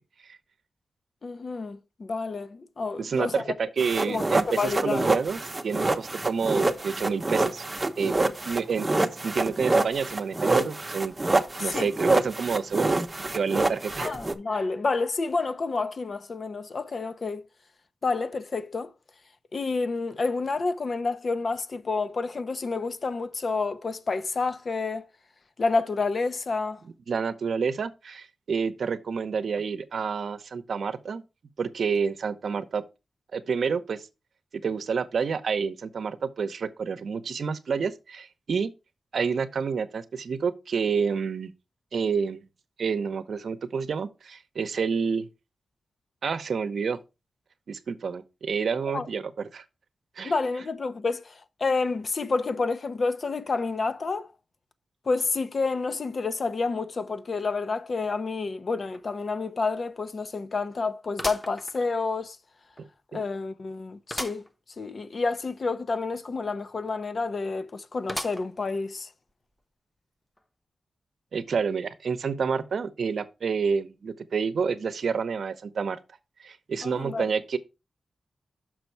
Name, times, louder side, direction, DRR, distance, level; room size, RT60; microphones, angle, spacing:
voice 1, 1.2-3.4 4.1-5.1 11.6-11.9 14.0-17.4 18.0-18.9 19.5-25.1 25.6-26.8 48.9-49.1 50.2-54.3 55.1-62.4 63.1-64.4 64.8-69.1 76.8-77.3, left 4 dB, 50° left, 0.6 m, -29 dB
voice 2, 3.0-7.6 8.0-8.2 8.5-8.9 9.2-11.1 11.6-13.0 13.3-14.2 27.1-31.2 31.6-32.8 33.3-34.1 34.6-38.7 39.1-41.5 41.9-42.5 42.8-45.3 46.2-47.0 47.7-49.6 50.2-50.3 63.1-63.2 71.3-76.0 76.4-77.6, right 5 dB, 70° right, 0.7 m, -29 dB
sound 1, 3.8-14.3, right 2 dB, 25° right, 0.7 m, -26 dB
sound 2, 58.9-59.0 59.5-59.6 61.2-62.3 62.8-62.9 64.1-64.5 64.9-65.0 65.2-65.3 68.1-68.7 69.3-69.4 70.4-70.5, equal, 10° left, 0.8 m, -36 dB
6.2 x 5.2 x 4.5 m
wide cardioid pair, 95°, 0 cm